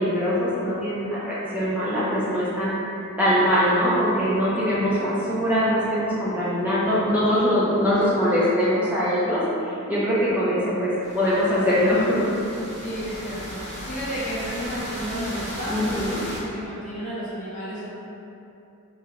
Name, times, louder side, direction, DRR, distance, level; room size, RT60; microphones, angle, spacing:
voice 1, 0.0-2.8 3.2-9.4 9.7-12.3 15.7-16.2, equal, 5° right, -10 dB, 0.5 m, -22 dB
sound 1, 11.0-16.4, equal, 55° right, 1.1 m, -36 dB
voice 2, 12.8-17.9, equal, 35° left, -10 dB, 0.7 m, -32 dB
3.8 x 2.2 x 3.0 m, 2.8 s
head